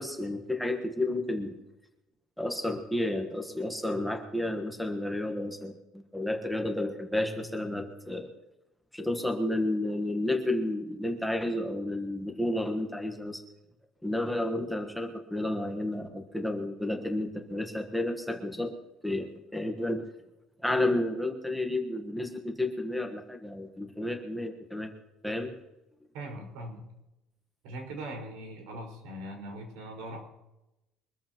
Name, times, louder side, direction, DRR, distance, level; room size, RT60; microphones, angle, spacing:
voice 1, 0.0-1.6 2.4-8.3 8.9-13.4 14.0-18.7 19.0-20.0 20.6-24.9 25.2-25.6, left 1 dB, ahead, 3 dB, 1.4 m, -31 dB
voice 2, 26.1-26.9 27.6-30.2, right 1 dB, 90° right, 2 dB, 5.1 m, -40 dB
23.5 x 14.0 x 3.0 m, 0.95 s
cardioid pair, 160°, 0 cm